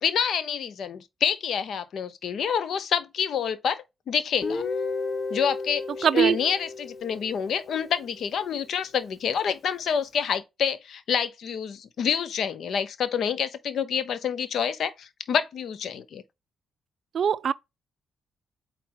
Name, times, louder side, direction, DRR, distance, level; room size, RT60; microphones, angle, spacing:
voice 1, 0.0-4.6 5.3-16.2, left 7 dB, 65° left, 0.8 m, -28 dB
Guitar, 4.4-8.2, left 4 dB, 40° left, 1.1 m, -33 dB
voice 2, 6.0-6.4 17.1-17.5, right 8 dB, 55° right, 0.4 m, -21 dB
8.4 x 3.4 x 3.8 m
hypercardioid pair, 40°, 0 cm